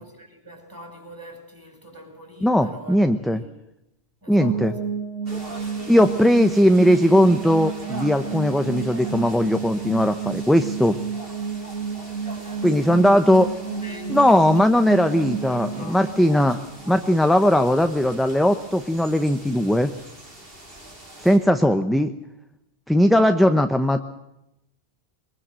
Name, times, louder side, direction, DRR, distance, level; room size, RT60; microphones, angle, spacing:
voice 1, 0.0-3.5 4.2-4.8 5.2-5.3 12.4-13.1 13.5-16.0 21.3-21.5, equal, 20° right, 5 dB, 5.8 m, -43 dB
voice 2, 2.4-3.4 4.3-4.7 5.9-11.0 12.6-13.5 14.1-16.6 16.9-19.9 21.2-22.1 22.9-24.0, equal, ahead, 8 dB, 0.9 m, -18 dB
sound 1, 4.4-17.3, right 6 dB, 85° right, 3.2 m, -31 dB
sound 2, 5.3-21.4, right 1 dB, 65° right, 5.4 m, -42 dB
23.0 x 20.5 x 7.6 m, 0.87 s
omnidirectional pair, 1.1 m